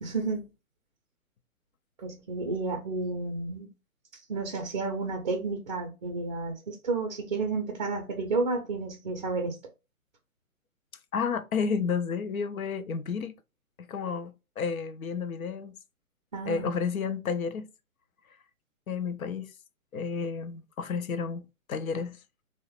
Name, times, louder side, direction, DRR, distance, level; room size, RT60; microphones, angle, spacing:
voice 1, 0.0-0.5 2.0-3.7 4.3-9.6 16.3-16.7, right 3 dB, 35° right, 0.4 m, -31 dB
voice 2, 11.1-13.3 13.9-15.7 16.5-17.7 18.9-19.5 19.9-22.2, left 5 dB, 75° left, 0.5 m, -31 dB
3.0 x 2.0 x 2.9 m
figure-of-eight pair, 135°, 42 cm